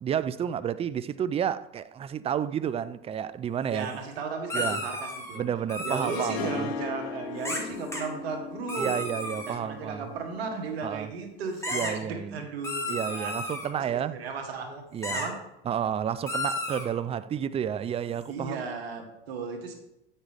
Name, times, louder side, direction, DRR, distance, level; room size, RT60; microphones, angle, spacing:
voice 1, 0.0-3.9 4.5-4.8 5.4-6.7 8.8-10.1 10.8-11.1 11.7-12.4 12.9-14.2 14.9-15.2 15.7-18.6, right 9 dB, 20° right, 0.4 m, -31 dB
voice 2, 3.7-5.5 5.8-8.9 9.5-13.4 13.9-15.4 18.3-19.7, right 4 dB, 85° right, 1.6 m, -35 dB
sound 1, 4.5-5.4 5.7-6.3 7.4-7.6 7.9-8.0 8.7-9.6 11.6-11.9 12.6-13.7 15.0-15.3 16.3-16.9, left 1 dB, 10° left, 2.1 m, -32 dB
Harp, 6.0-11.1, left 6 dB, 85° left, 0.7 m, -38 dB
8.8 x 6.4 x 3.4 m
hypercardioid pair, 90°, 30 cm